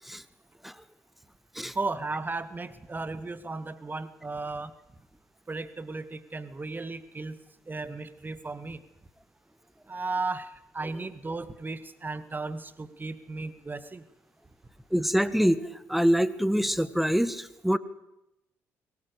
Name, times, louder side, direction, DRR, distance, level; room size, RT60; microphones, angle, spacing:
voice 1, 1.7-4.7 5.5-7.4 7.7-8.8 9.9-10.5 10.7-14.0, right 3 dB, 25° right, 13 dB, 2.1 m, -35 dB
voice 2, 14.9-15.6 15.9-17.8, equal, ahead, 15 dB, 1.7 m, -25 dB
22.5 x 19.0 x 8.3 m, 0.89 s
figure-of-eight pair, 45°, 8 cm